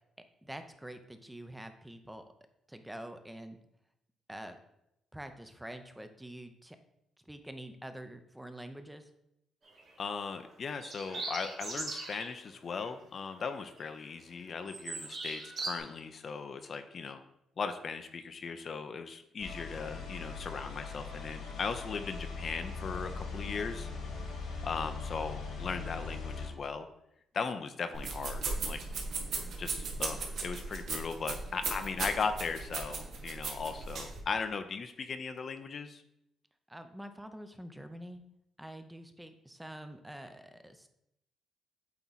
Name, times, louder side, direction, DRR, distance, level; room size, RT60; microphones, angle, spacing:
voice 1, 0.4-2.2 2.7-3.6 4.3-4.6 5.1-6.8 7.3-9.1 36.7-38.2 38.6-40.9, right 1 dB, 5° right, 8 dB, 0.6 m, -46 dB
sound 1, 9.6-9.9 10.7-12.3 12.7-12.9 13.3-14.1 14.4-15.7, right 3 dB, 50° right, 1.9 m, -40 dB
voice 2, 10.0-17.2 17.6-23.9 24.6-26.9 27.3-28.8 29.6-36.0, left 5 dB, 50° left, 9 dB, 0.5 m, -38 dB
sound 2, 19.4-26.5, left 4 dB, 80° left, 1.8 m, -40 dB
sound 3, 27.9-34.2, right 4 dB, 65° right, 1.0 m, -37 dB
8.3 x 2.9 x 4.0 m, 0.81 s
cardioid pair, 90°, 0 cm